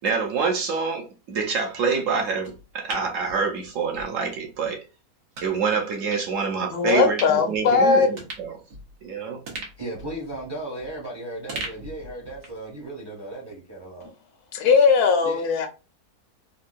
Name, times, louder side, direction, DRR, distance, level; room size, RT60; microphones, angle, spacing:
voice 1, 0.0-4.8 5.4-8.5 9.0-9.4, right 5 dB, 65° right, 0.9 m, -26 dB
sound 1, 2.4-4.1 4.4-4.5 5.3-5.5 6.1-6.3 6.8-7.5 7.8-7.9 8.2-9.1 9.5-11.1 11.5-12.7 13.0-13.1, right 2 dB, 85° right, 1.5 m, -38 dB
voice 2, 6.7-8.1 14.5-15.7, left 5 dB, 80° left, 1.2 m, -19 dB
voice 3, 9.8-14.1 15.2-15.4, right 1 dB, 30° right, 0.5 m, -36 dB
3.6 x 2.3 x 2.5 m
omnidirectional pair, 1.6 m